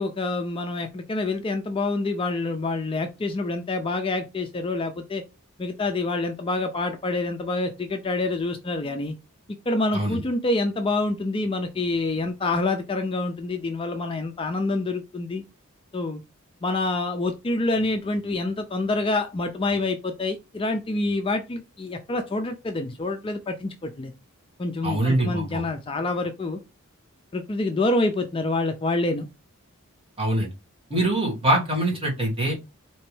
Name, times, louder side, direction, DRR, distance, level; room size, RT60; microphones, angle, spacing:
voice 1, 0.0-5.2 5.6-9.1 9.7-15.4 15.9-16.2 16.6-24.1 24.6-26.6 27.3-29.3, left 2 dB, 25° left, 0.3 m, -27 dB
voice 2, 24.8-25.6 30.2-30.5 30.9-32.5, right 1 dB, 25° right, 1.6 m, -23 dB
4.3 x 2.9 x 3.1 m
head